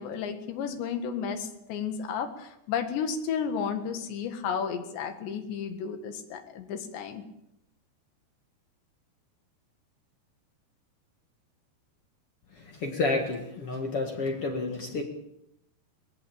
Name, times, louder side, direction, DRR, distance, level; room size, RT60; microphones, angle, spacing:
voice 1, 0.0-7.2, left 7 dB, 80° left, 6 dB, 4.0 m, -33 dB
voice 2, 12.6-15.0, left 3 dB, 45° left, 3 dB, 2.1 m, -30 dB
20.0 x 17.5 x 8.6 m, 0.81 s
omnidirectional pair, 5.0 m